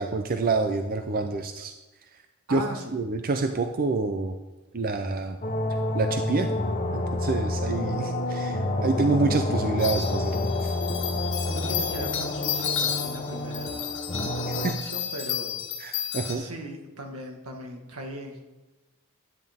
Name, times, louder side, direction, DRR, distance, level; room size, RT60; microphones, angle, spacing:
voice 1, 0.0-1.7 2.5-2.6 2.9-4.3 4.7-5.4 5.9-6.5 6.9-10.4 10.6-10.7 15.8-16.4, right 3 dB, 45° right, 6 dB, 0.5 m, -27 dB
voice 2, 2.5-3.0 11.0-13.9 14.4-15.6 16.3-18.4, right 1 dB, 80° right, 2 dB, 1.7 m, -39 dB
sound 1, 5.4-14.7, left 1 dB, 35° left, 1.0 m, -29 dB
sound 2, 9.8-16.3, left 8 dB, 60° left, 1.7 m, -32 dB
10.5 x 9.7 x 3.6 m, 1.1 s
head